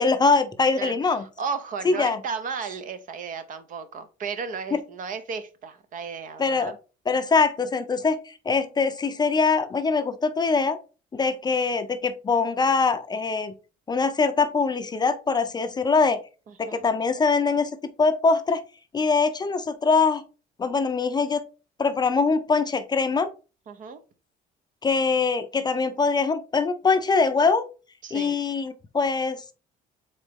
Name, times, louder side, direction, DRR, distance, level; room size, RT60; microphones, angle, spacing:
voice 1, 0.0-1.2 1.8-2.2 4.7-4.8 6.4-6.7 7.1-10.8 11.1-13.5 13.9-16.2 16.6-17.7 18.0-18.6 18.9-20.2 20.6-21.4 21.8-23.3 24.8-27.6 28.1-29.5, left 4 dB, 25° left, 10 dB, 0.5 m, -23 dB
voice 2, 0.8-6.8 16.5-16.8 23.7-24.0 28.0-28.4, right 5 dB, 50° right, 11 dB, 0.7 m, -34 dB
4.0 x 3.7 x 3.5 m, 0.33 s
cardioid pair, 110°, 17 cm